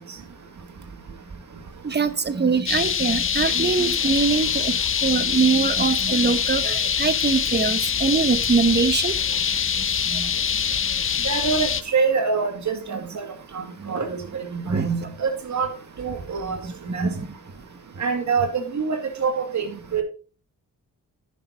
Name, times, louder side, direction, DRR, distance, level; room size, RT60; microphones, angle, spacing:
voice 1, 1.8-9.1 9.5-11.0 12.9-13.0 13.8-14.0 14.6-14.9 16.4-17.4, right 5 dB, 30° right, 0.9 m, -24 dB
sound 1, 2.7-11.8, left 7 dB, 40° left, 0.6 m, -24 dB
voice 2, 11.2-13.2 13.5-15.7 16.0-16.6 16.9-17.1 18.0-20.0, right 5 dB, 55° right, 2.2 m, -25 dB
10.0 x 6.0 x 4.0 m
cardioid pair, 75°, 34 cm